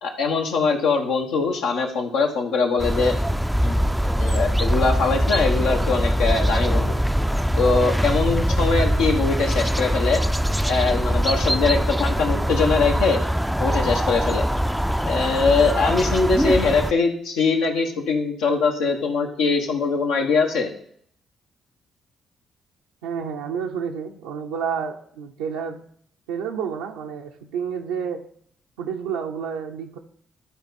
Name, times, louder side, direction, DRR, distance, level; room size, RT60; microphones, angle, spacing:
voice 1, 0.0-3.2 3.6-3.9 4.2-7.0 7.6-10.2 10.7-13.2 13.6-14.5 15.0-20.7, left 4 dB, 80° left, 2 dB, 1.3 m, -22 dB
sound 1, 2.8-16.9, equal, ahead, 0.4 m, -22 dB
voice 2, 23.0-25.8 26.3-28.2 28.8-30.0, right 7 dB, 90° right, 0 dB, 0.6 m, -30 dB
12.5 x 4.2 x 4.2 m, 0.64 s
hypercardioid pair, 55°, 0 cm